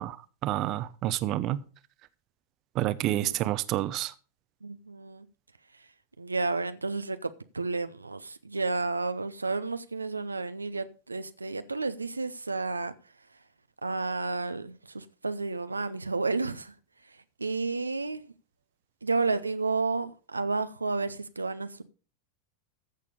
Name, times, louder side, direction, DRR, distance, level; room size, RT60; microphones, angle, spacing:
voice 1, 0.0-1.6 2.7-4.1, right 14 dB, 35° right, 0.7 m, -29 dB
voice 2, 4.6-5.3 5.7-5.9 6.2-12.9 13.8-16.7 17.0-18.2 19.0-21.8, right 3 dB, 80° right, 0.7 m, -31 dB
14.5 x 6.8 x 5.0 m
figure-of-eight pair, 90°, 0 cm